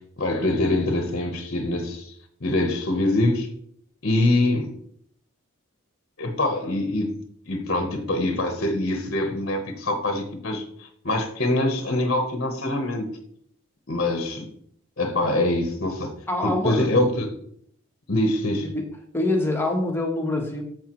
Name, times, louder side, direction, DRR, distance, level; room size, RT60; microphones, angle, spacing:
voice 1, 0.2-2.2 2.4-3.5 4.0-4.7 6.2-7.1 7.5-13.1 13.9-14.5 15.0-16.1 16.4-17.3 18.1-18.7, left 1 dB, 50° left, 5 dB, 0.9 m, -24 dB
voice 2, 16.3-16.9 18.6-20.6, left 2 dB, 10° left, 1 dB, 1.1 m, -25 dB
13.5 x 4.7 x 3.0 m, 0.65 s
head